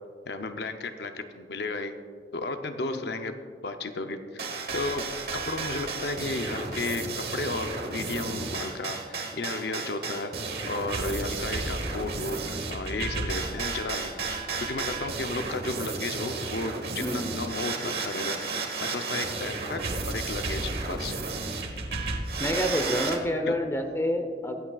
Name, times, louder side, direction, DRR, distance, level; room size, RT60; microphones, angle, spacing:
voice 1, 0.3-1.9 2.3-3.3 3.6-4.5 4.7-10.3 10.7-18.4 18.8-21.1 23.5-23.6, left 3 dB, 70° left, 7 dB, 0.6 m, -33 dB
sound 1, 4.4-23.2, right 3 dB, 60° right, 1.2 m, -33 dB
voice 2, 17.0-17.3 22.4-24.5, left 1 dB, 15° left, 5 dB, 0.7 m, -28 dB
22.5 x 8.5 x 2.4 m, 2.1 s
head